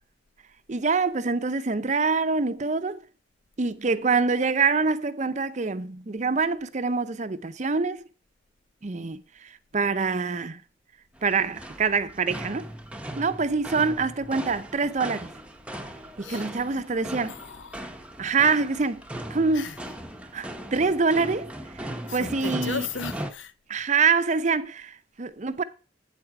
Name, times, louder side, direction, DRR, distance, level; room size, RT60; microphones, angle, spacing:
voice 1, 0.7-3.0 3.6-8.0 8.8-10.6 11.2-12.7 13.1-15.3 16.2-17.4 18.2-19.0 19.3-19.7 20.3-22.9 23.7-25.6, right 4 dB, 40° right, 0.6 m, -25 dB
sound 1, 11.2-23.3, right 1 dB, 5° right, 0.8 m, -38 dB
voice 2, 17.1-17.8 19.5-19.8 22.1-23.5, left 5 dB, 80° left, 0.7 m, -36 dB
8.3 x 7.9 x 4.8 m
head